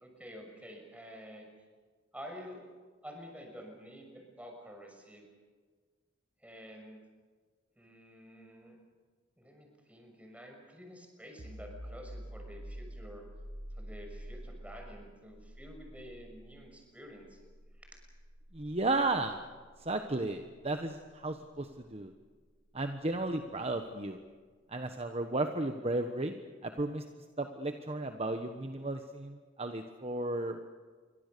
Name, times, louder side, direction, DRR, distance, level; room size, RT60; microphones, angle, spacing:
voice 1, 0.0-1.5 2.1-2.6 3.0-5.2 6.4-7.0 7.8-8.8 9.4-13.2 13.8-17.4 17.8-17.9, equal, 5° right, 2 dB, 6.3 m, -49 dB
sound 1, 11.4-22.8, equal, 70° right, 2.0 m, -49 dB
voice 2, 18.5-19.4 19.8-22.1 22.7-24.2 24.7-26.3 26.6-30.6, right 2 dB, 30° right, 6 dB, 1.2 m, -34 dB
28.5 x 23.5 x 6.9 m, 1.5 s
head